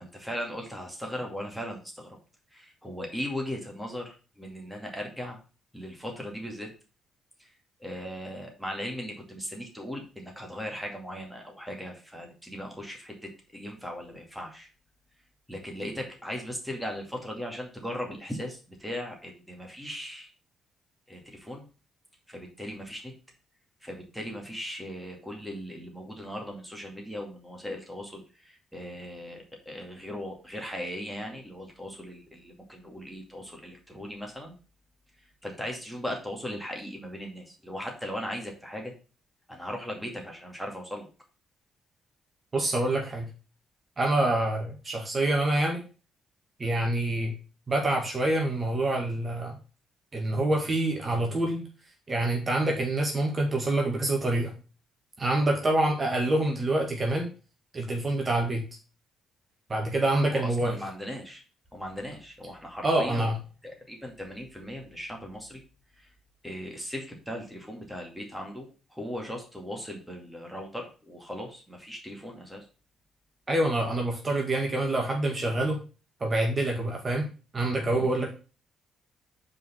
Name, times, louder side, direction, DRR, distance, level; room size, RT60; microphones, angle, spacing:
voice 1, 0.0-2.2 2.5-5.4 5.7-6.7 7.4-7.5 7.8-14.7 15.5-20.3 21.1-21.6 22.3-23.1 23.8-34.6 35.2-38.9 39.5-41.1 60.3-61.4 61.7-63.3 63.6-65.6 66.0-66.1 66.4-72.6 77.9-78.1, equal, ahead, 0 dB, 2.3 m, -38 dB
voice 2, 42.5-43.3 44.0-45.8 46.6-47.3 47.7-49.6 50.1-51.6 52.1-54.5 55.2-57.3 57.7-58.6 59.7-60.8 62.8-63.4 73.5-75.8 76.2-77.3 77.5-78.3, right 1 dB, 30° right, 1 dB, 1.7 m, -26 dB
5.4 x 4.8 x 5.7 m, 0.34 s
cardioid pair, 90°, 0 cm